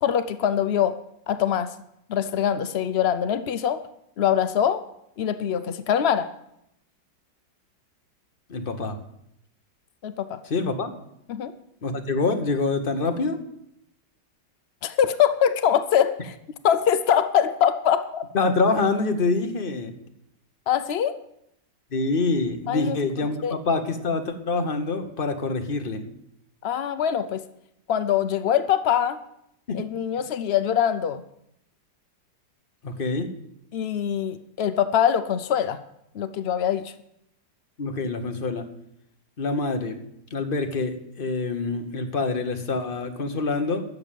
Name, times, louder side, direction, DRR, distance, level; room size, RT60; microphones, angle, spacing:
voice 1, 0.0-1.0 1.3-1.7 2.1-3.8 4.2-4.8 5.2-6.3 10.0-10.4 11.3-11.5 14.8-16.4 16.6-18.3 20.7-21.1 22.7-23.0 23.4-23.6 26.6-27.4 27.9-29.2 29.7-31.2 33.7-35.8 36.1-36.9, left 9 dB, 85° left, 12 dB, 0.5 m, -23 dB
voice 2, 8.5-9.0 10.5-10.9 11.8-13.4 18.3-19.9 21.9-26.0 29.7-29.8 32.8-33.3 37.8-38.7 39.4-40.0 40.3-43.8, left 3 dB, 35° left, 7 dB, 1.2 m, -26 dB
13.0 x 6.8 x 9.1 m, 0.77 s
omnidirectional pair, 1.9 m